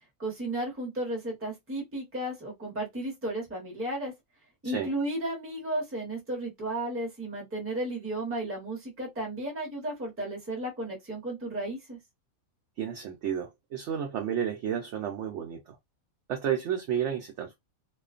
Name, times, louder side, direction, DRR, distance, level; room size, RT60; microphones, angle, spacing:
voice 1, 0.2-4.1 4.6-12.0, right 1 dB, 10° right, 0.6 m, -34 dB
voice 2, 12.8-15.8 16.3-17.6, right 9 dB, 65° right, 0.7 m, -31 dB
2.4 x 2.2 x 2.4 m
omnidirectional pair, 1.6 m